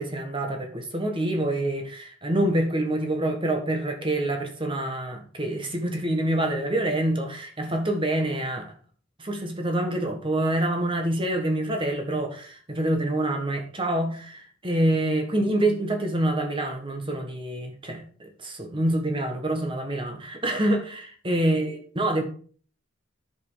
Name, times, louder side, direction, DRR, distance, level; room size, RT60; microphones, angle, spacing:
voice 1, 0.0-8.7 9.2-22.2, right 1 dB, 25° right, 1.5 m, -26 dB
10.5 x 5.4 x 5.0 m
head